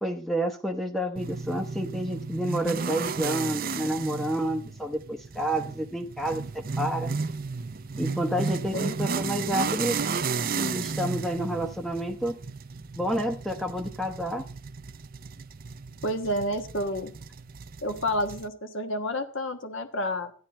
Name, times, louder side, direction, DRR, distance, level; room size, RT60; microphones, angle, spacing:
voice 1, 0.0-7.1 8.0-10.0 10.6-12.4 12.9-14.4, equal, ahead, 5 dB, 0.8 m, -29 dB
sound 1, 1.2-18.5, right 4 dB, 45° right, 0.6 m, -33 dB
voice 2, 16.0-17.1 17.8-20.3, equal, 65° left, 7 dB, 1.4 m, -29 dB
13.5 x 10.5 x 4.3 m, 0.40 s
head